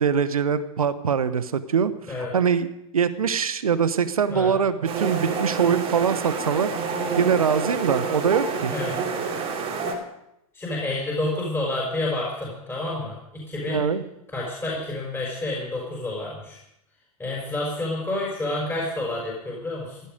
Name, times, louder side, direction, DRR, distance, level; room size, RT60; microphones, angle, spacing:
voice 1, 0.0-1.9 2.3-2.7 2.9-6.7 7.2-8.7 13.7-14.0, right 6 dB, 75° right, 14 dB, 1.0 m, -23 dB
sound 1, 4.8-9.9, right 5 dB, 30° right, 2.9 m, -28 dB
voice 2, 10.5-13.8 14.3-16.6 17.2-20.0, left 2 dB, 10° left, -4 dB, 5.1 m, -29 dB
16.0 x 11.5 x 5.2 m, 0.83 s
figure-of-eight pair, 95°, 19 cm